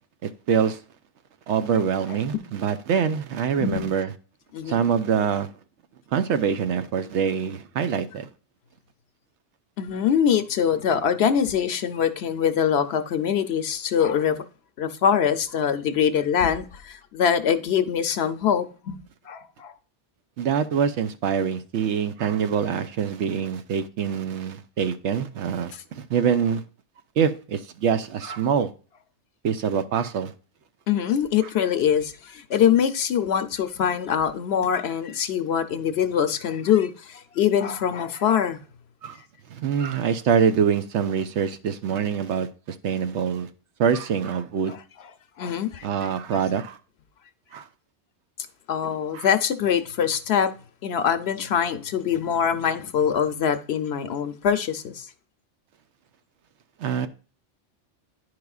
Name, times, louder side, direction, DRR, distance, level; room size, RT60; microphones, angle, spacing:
voice 1, 0.2-0.8 1.5-4.1 4.6-5.5 6.1-8.3 20.4-26.6 27.2-28.7 29.4-30.3 39.0-39.2 39.5-43.5 43.8-44.7 45.8-46.8 47.5-47.7 49.1-49.3 56.8-57.1, right 7 dB, 75° right, 0.9 m, -25 dB
voice 2, 3.6-3.9 4.5-4.8 9.8-14.4 14.8-19.0 19.3-19.7 30.9-38.6 44.7-44.8 45.4-45.9 48.7-50.5 50.8-55.1, left 8 dB, 65° left, 0.8 m, -23 dB
10.5 x 4.8 x 2.3 m
omnidirectional pair, 1.2 m